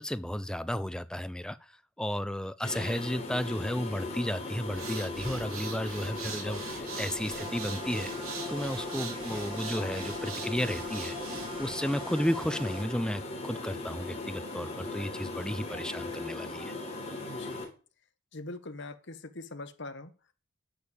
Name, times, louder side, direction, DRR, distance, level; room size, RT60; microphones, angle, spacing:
voice 1, 0.0-1.6 2.0-8.1 8.5-11.1 11.6-16.7, equal, 5° left, 0.5 m, -33 dB
sound 1, 2.6-17.6, left 2 dB, 30° left, 4.1 m, -38 dB
sound 2, 4.6-11.7, right 6 dB, 75° right, 3.1 m, -43 dB
sound 3, 7.3-12.9, equal, 25° right, 3.4 m, -43 dB
voice 2, 17.2-17.6 18.3-20.1, left 2 dB, 55° left, 1.3 m, -42 dB
10.5 x 6.9 x 7.1 m
head